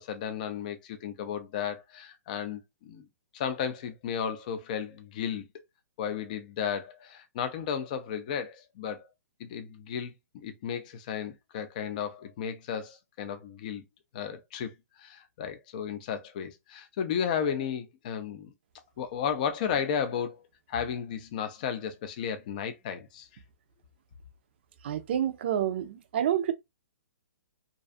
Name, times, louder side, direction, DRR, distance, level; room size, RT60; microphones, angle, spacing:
voice 1, 0.0-3.1 3.3-5.5 6.0-9.0 9.4-13.8 14.1-14.7 15.0-18.5 19.0-20.4 20.7-23.3, left 8 dB, 30° left, 0.3 m, -34 dB
voice 2, 24.8-26.5, right 10 dB, 40° right, 0.4 m, -28 dB
2.5 x 2.3 x 2.4 m
hypercardioid pair, 165°, 9 cm